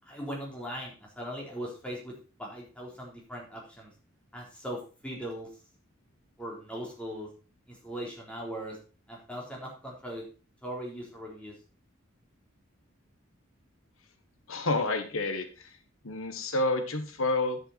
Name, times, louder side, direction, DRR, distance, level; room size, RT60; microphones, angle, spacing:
voice 1, 0.1-2.1 2.4-3.9 4.3-5.5 6.4-7.3 7.7-8.8 9.1-10.2 10.6-11.5, equal, 5° left, -3 dB, 3.8 m, -39 dB
voice 2, 14.5-15.7 16.0-17.6, left 2 dB, 80° left, 7 dB, 1.4 m, -29 dB
9.8 x 8.9 x 4.3 m, 0.35 s
head